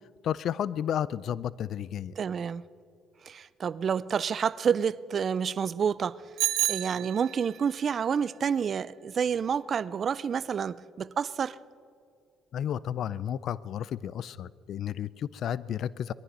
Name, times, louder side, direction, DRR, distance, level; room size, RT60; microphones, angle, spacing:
voice 1, 0.2-2.1 12.5-16.1, left 9 dB, 65° left, 0.4 m, -32 dB
voice 2, 2.2-2.6 3.2-6.2 6.7-11.6, right 7 dB, 50° right, 0.4 m, -29 dB
Bicycle bell, 6.4-7.6, right 13 dB, 75° right, 0.9 m, -29 dB
20.5 x 13.0 x 5.3 m
supercardioid pair, 75°, 0 cm